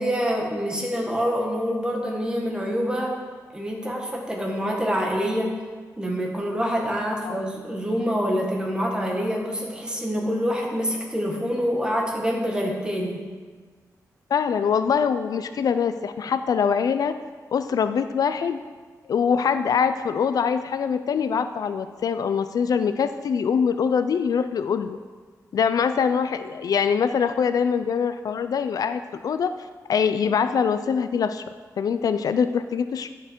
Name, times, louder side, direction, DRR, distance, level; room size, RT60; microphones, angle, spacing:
voice 1, 0.0-3.1 3.5-5.5 6.0-13.2, equal, 15° right, -1 dB, 1.6 m, -26 dB
voice 2, 14.3-17.1 17.5-18.6 19.1-25.0 25.5-29.5 29.9-31.4 31.8-33.1, left 6 dB, 65° left, 11 dB, 0.4 m, -23 dB
11.0 x 6.6 x 4.5 m, 1.5 s
wide cardioid pair, 140°, 7 cm